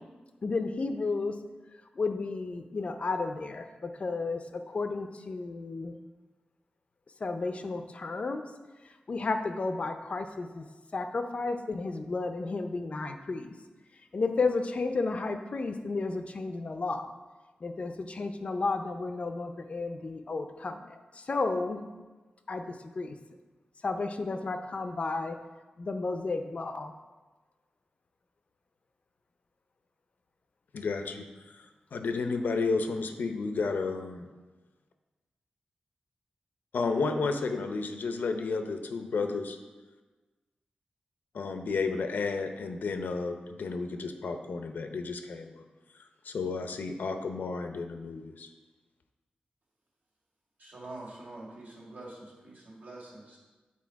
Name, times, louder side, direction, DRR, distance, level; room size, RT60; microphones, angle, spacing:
voice 1, 0.4-1.3 2.0-5.9 7.2-8.4 9.1-10.6 10.9-13.5 14.1-17.1 17.6-21.8 22.5-22.6 22.9-23.2 23.8-25.4 25.8-26.9, left 3 dB, 45° left, 7 dB, 0.5 m, -32 dB
voice 2, 30.7-31.7 31.9-34.3 36.7-39.6 41.4-45.6 46.2-48.5, left 4 dB, 85° left, 6 dB, 0.7 m, -32 dB
voice 3, 50.6-53.4, right 2 dB, 65° right, -4 dB, 1.9 m, -45 dB
8.5 x 4.1 x 4.6 m, 1.2 s
wide cardioid pair, 145°, 3 cm